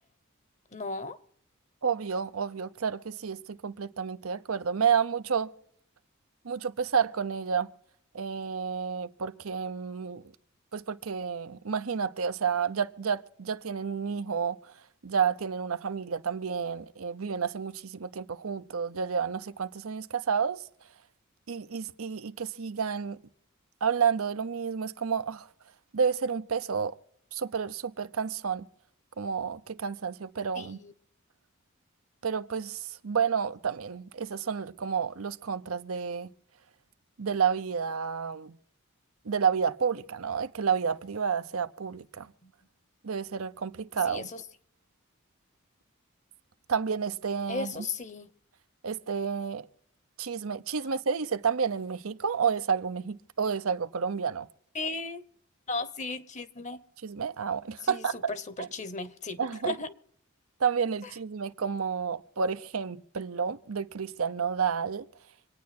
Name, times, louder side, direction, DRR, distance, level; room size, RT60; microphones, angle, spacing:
voice 1, 0.7-1.2 30.5-30.9 42.4-42.5 44.0-44.4 47.5-48.3 54.7-55.2 55.7-56.8 57.8-59.9 61.0-61.1, left 3 dB, 35° left, 1.0 m, -36 dB
voice 2, 1.8-5.5 6.4-7.7 8.1-10.2 10.7-14.6 15.0-20.6 21.5-23.2 23.8-25.5 25.9-27.0 27.3-28.7 29.2-30.8 32.2-36.3 37.2-38.6 39.2-42.3 43.0-44.3 46.7-47.7 48.8-49.7 50.2-54.5 57.0-58.1 58.6-58.7 59.4-59.7 60.6-65.1, right 6 dB, 90° right, 0.7 m, -30 dB
26.0 x 9.5 x 4.3 m
head